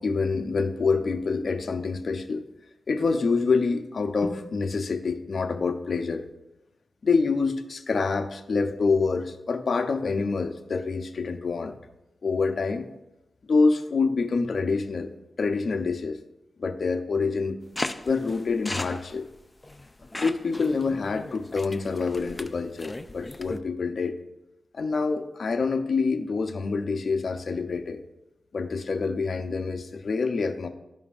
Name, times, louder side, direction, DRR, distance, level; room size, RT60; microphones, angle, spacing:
voice 1, 0.0-2.4 2.9-6.2 7.0-11.7 12.2-12.9 13.5-15.1 15.4-16.2 16.6-17.6 18.0-19.3 20.2-24.1 24.7-28.0 28.5-30.7, left 4 dB, 60° left, 6 dB, 0.7 m, -26 dB
sound 1, 17.8-23.6, left 2 dB, 25° left, 0.5 m, -37 dB
14.0 x 5.3 x 2.5 m, 0.93 s
cardioid pair, 60°, 0 cm